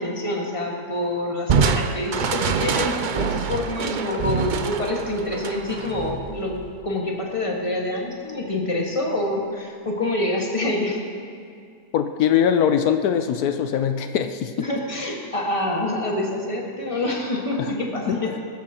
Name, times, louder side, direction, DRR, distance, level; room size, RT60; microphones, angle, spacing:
voice 1, 0.0-6.6 6.8-11.0 14.6-18.4, left 2 dB, 20° left, -1 dB, 1.7 m, -26 dB
Crushing, 1.5-6.9, right 6 dB, 75° right, 0.4 m, -25 dB
voice 2, 11.9-14.5 17.6-17.7 18.1-18.4, left 8 dB, 85° left, 7 dB, 1.2 m, -22 dB
20.5 x 13.0 x 2.9 m, 2.3 s
omnidirectional pair, 1.6 m